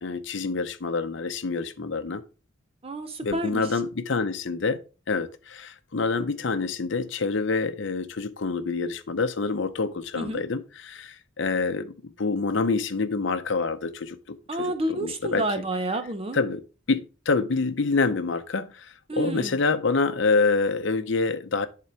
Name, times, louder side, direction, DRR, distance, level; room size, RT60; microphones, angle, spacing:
voice 1, 0.0-2.2 3.2-4.8 5.1-15.4 16.3-16.6 16.9-21.7, left 4 dB, 60° left, 0.7 m, -27 dB
voice 2, 2.8-3.6 10.1-10.4 14.5-16.4 19.1-19.6, right 1 dB, 25° right, 0.6 m, -29 dB
11.0 x 3.8 x 4.4 m
head